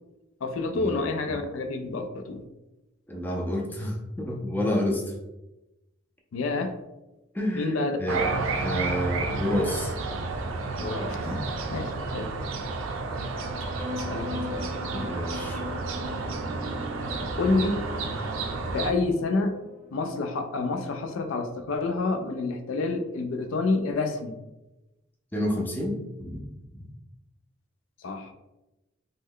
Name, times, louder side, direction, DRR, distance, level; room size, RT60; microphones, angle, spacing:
voice 1, 0.4-2.4 6.3-6.8 7.5-8.0 10.8-11.2 11.7-12.3 13.9-14.8 17.4-17.9 18.7-19.5 19.9-24.4 28.0-28.3, left 3 dB, 85° left, 7 dB, 0.4 m, -28 dB
voice 2, 3.1-5.0 7.3-8.2 8.6-9.9 11.2-11.4 14.9-15.6 25.3-26.4, left 1 dB, 10° left, -1 dB, 0.4 m, -29 dB
sound 1, 8.1-18.9, right 3 dB, 85° right, 0.4 m, -31 dB
sound 2, 13.4-20.3, left 2 dB, 40° right, 0.7 m, -40 dB
3.1 x 2.1 x 3.6 m, 0.99 s
head